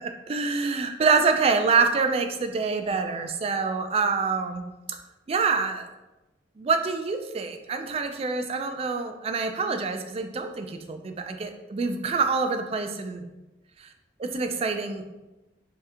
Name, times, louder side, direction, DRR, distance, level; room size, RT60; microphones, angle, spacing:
voice 1, 0.0-4.6 4.9-5.0 5.3-5.9 6.6-13.3 14.2-15.0, right 4 dB, 35° right, 6 dB, 0.3 m, -26 dB
3.2 x 2.8 x 3.6 m, 1.0 s
head